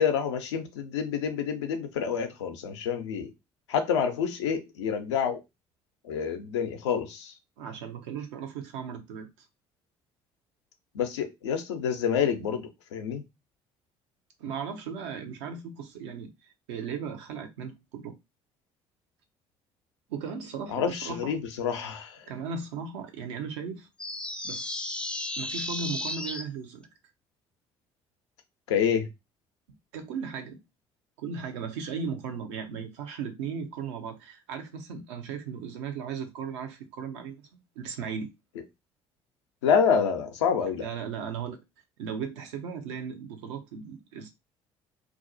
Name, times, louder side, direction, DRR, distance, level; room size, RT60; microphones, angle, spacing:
voice 1, 0.0-3.3 3.7-5.4 6.1-7.3 10.9-13.2 20.7-22.2 28.7-29.1 39.6-40.8, left 7 dB, 85° left, 0.4 m, -27 dB
voice 2, 7.6-9.5 14.4-16.3 16.7-18.1 20.1-21.4 22.3-23.9 24.4-24.8 25.4-26.9 29.9-30.6 31.2-37.5 37.8-38.3 40.8-41.6 42.0-44.3, right 6 dB, 80° right, 0.5 m, -36 dB
sound 1, 24.0-26.4, left 1 dB, 5° left, 0.4 m, -34 dB
2.4 x 2.0 x 2.6 m
hypercardioid pair, 55°, 14 cm